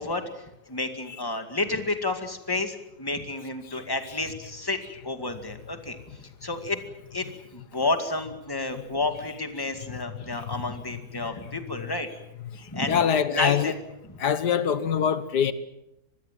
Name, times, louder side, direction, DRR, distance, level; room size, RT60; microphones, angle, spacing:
voice 1, 0.0-6.8 7.1-12.1 12.6-13.7 14.0-14.2, left 2 dB, 15° left, 2.2 m, -31 dB
voice 2, 12.9-13.7 14.2-15.5, left 8 dB, 90° left, 1.8 m, -23 dB
25.5 x 21.0 x 7.7 m
omnidirectional pair, 1.7 m